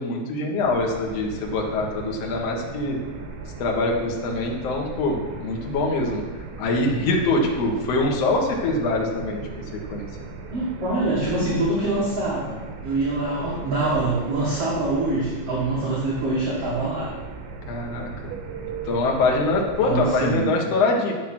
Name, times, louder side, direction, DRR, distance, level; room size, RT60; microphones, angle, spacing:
voice 1, 0.0-3.0 3.6-9.4 9.9-10.1 17.7-18.3 18.8-21.1, left 2 dB, 65° left, 0 dB, 1.6 m, -24 dB
sound 1, 0.6-20.5, right 4 dB, 80° right, 3.5 m, -37 dB
voice 2, 10.5-12.6 12.8-17.1 19.8-20.5, right 2 dB, 45° right, -6 dB, 2.1 m, -24 dB
10.5 x 7.7 x 6.1 m, 1.2 s
omnidirectional pair, 5.4 m